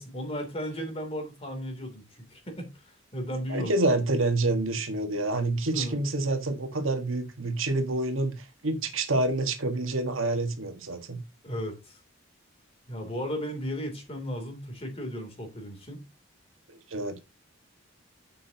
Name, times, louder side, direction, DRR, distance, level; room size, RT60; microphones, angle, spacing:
voice 1, 0.0-3.7 5.7-6.0 11.4-12.0 12.9-16.0, equal, 30° left, 2.9 m, -35 dB
voice 2, 3.5-11.2 16.7-17.2, right 2 dB, 80° right, 1.5 m, -28 dB
10.0 x 7.5 x 2.8 m
head